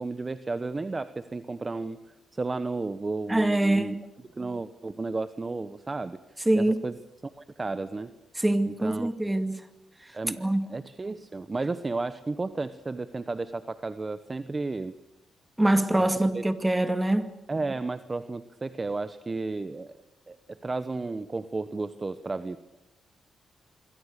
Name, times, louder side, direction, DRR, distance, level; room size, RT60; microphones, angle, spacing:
voice 1, 0.0-4.0 4.4-6.2 6.5-6.9 7.4-8.1 8.7-9.1 10.1-15.0 15.9-16.4 17.5-19.9 20.3-22.6, right 3 dB, 25° right, 1.1 m, -33 dB
voice 2, 3.3-4.0 6.5-6.8 8.4-9.6 10.4-10.7 15.6-17.3, right 1 dB, 10° right, 2.3 m, -24 dB
26.5 x 23.0 x 6.7 m
cardioid pair, 85°, 0 cm